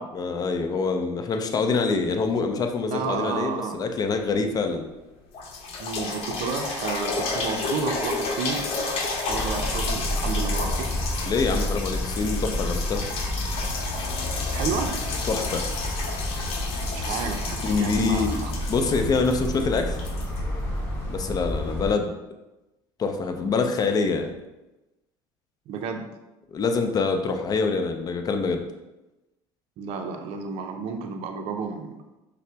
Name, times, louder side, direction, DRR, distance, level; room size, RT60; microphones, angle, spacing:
voice 1, 0.1-4.9 11.2-13.0 15.3-15.6 17.1-17.2 17.6-18.4 18.7-20.0 21.1-22.1 23.0-24.3 26.5-28.6, left 4 dB, 35° left, 5 dB, 0.5 m, -25 dB
voice 2, 2.9-3.8 5.8-8.7 8.9-11.0 14.5-14.9 16.9-18.6 25.7-26.1 29.8-32.0, right 5 dB, 60° right, 4 dB, 0.5 m, -31 dB
sound 1, 4.8-4.9 5.3-21.1 21.7-21.8, left 3 dB, 60° left, 0.8 m, -32 dB
sound 2, 9.3-21.9, left 1 dB, 20° left, 1.2 m, -30 dB
5.5 x 2.1 x 3.4 m, 1.0 s
supercardioid pair, 95°, 11 cm